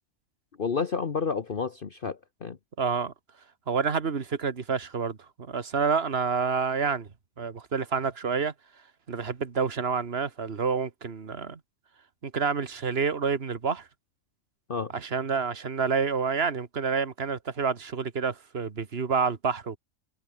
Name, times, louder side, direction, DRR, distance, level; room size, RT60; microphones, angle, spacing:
voice 1, 0.6-2.6 14.7-14.9, left 5 dB, 45° left, 1.3 m, -30 dB
voice 2, 2.8-3.1 3.7-7.1 7.4-8.5 9.1-11.6 12.2-13.9 14.9-19.8, right 5 dB, 50° right, 1.8 m, -28 dB
omnidirectional pair, 1.4 m